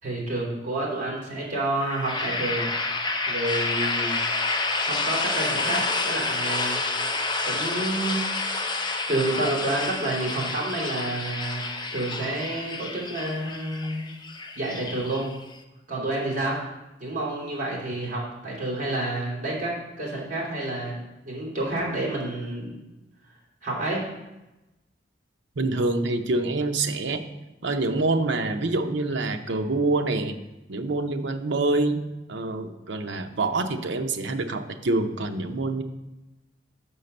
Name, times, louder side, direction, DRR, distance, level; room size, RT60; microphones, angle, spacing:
voice 1, 0.0-2.7 3.3-4.2 4.8-6.8 7.4-8.2 8.7-8.8 9.1-11.6 11.9-14.1 14.5-15.3 15.9-16.6 17.0-21.0 21.2-22.8 23.6-24.0, right 2 dB, 45° right, -4 dB, 2.9 m, -29 dB
sound 1, 1.8-15.6, left 3 dB, 25° left, 0.6 m, -29 dB
voice 2, 25.6-27.3 27.6-30.4 30.7-32.0 32.3-35.8, right 2 dB, 75° right, 6 dB, 0.7 m, -26 dB
5.9 x 5.5 x 6.6 m, 1.0 s
head